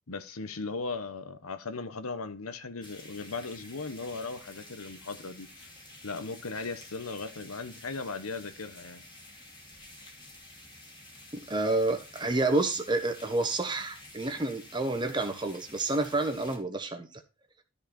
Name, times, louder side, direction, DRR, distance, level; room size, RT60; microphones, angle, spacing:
voice 1, 0.1-5.7 6.0-9.0, left 3 dB, 90° left, 1.1 m, -37 dB
sound 1, 2.8-16.6, left 1 dB, 20° left, 2.5 m, -50 dB
voice 2, 11.5-17.2, right 2 dB, 20° right, 1.3 m, -29 dB
13.0 x 5.0 x 4.3 m
head